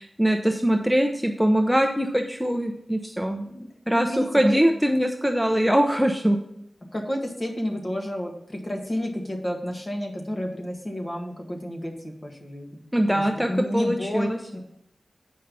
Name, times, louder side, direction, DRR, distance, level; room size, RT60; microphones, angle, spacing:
voice 1, 0.0-3.4 3.9-6.4 12.9-14.4, equal, 5° right, 4 dB, 0.6 m, -22 dB
voice 2, 3.2-4.6 6.9-12.7 13.1-14.6, equal, 30° left, 1 dB, 1.7 m, -31 dB
8.7 x 5.6 x 5.4 m, 0.76 s
wide cardioid pair, 95°, 0 cm